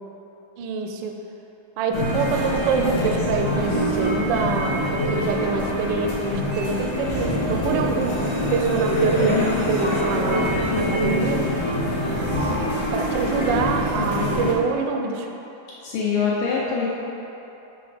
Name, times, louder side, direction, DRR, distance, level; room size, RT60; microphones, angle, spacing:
voice 1, 0.6-1.2 1.8-11.4 12.9-15.3, right 4 dB, 75° right, 3 dB, 1.2 m, -25 dB
sound 1, 1.9-14.5, equal, 25° left, 0.7 m, -24 dB
voice 2, 15.8-16.9, left 5 dB, 80° left, -6 dB, 1.6 m, -23 dB
6.9 x 3.9 x 5.0 m, 3.0 s
omnidirectional pair, 2.2 m